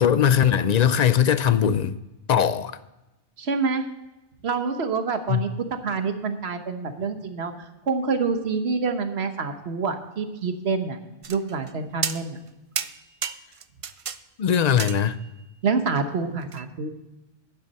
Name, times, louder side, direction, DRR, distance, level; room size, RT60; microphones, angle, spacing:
voice 1, 0.0-2.0 2.3-2.8 5.3-5.4 14.4-15.2, left 8 dB, 50° left, 0.5 m, -20 dB
voice 2, 3.4-3.9 4.4-5.5 5.8-7.5 7.9-11.0 11.3-12.4 15.6-16.9, right 4 dB, 70° right, 1.3 m, -26 dB
sound 1, 11.2-11.7 12.0-12.5 12.8-14.2 14.5-15.4 16.5-16.6, right 7 dB, 50° right, 0.4 m, -31 dB
11.5 x 9.7 x 4.1 m
omnidirectional pair, 1.1 m